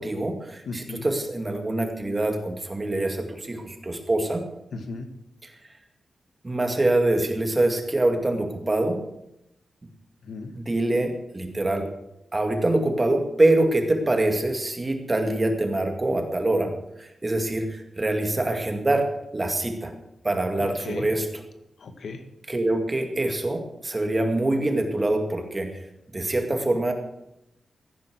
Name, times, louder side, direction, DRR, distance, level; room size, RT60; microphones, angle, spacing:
voice 1, 0.0-4.4 5.4-5.5 6.4-9.0 10.5-11.9 12.3-16.7 17.0-19.1 19.3-19.9 20.2-21.3 22.5-25.8 26.1-26.9, right 2 dB, 25° right, 4 dB, 2.2 m, -24 dB
voice 2, 0.6-1.0 4.7-5.1 10.2-10.5 20.6-21.1 21.8-22.2, left 3 dB, 75° left, 7 dB, 1.7 m, -36 dB
15.5 x 10.5 x 6.4 m, 0.84 s
wide cardioid pair, 140°, 0 cm